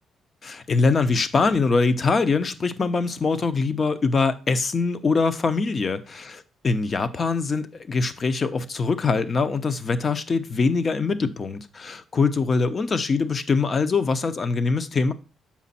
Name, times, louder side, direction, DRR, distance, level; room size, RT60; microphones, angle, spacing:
voice 1, 0.4-6.4 6.6-15.1, left 4 dB, 40° left, 0.7 m, -23 dB
7.3 x 5.1 x 4.2 m
cardioid pair, 90°, 0 cm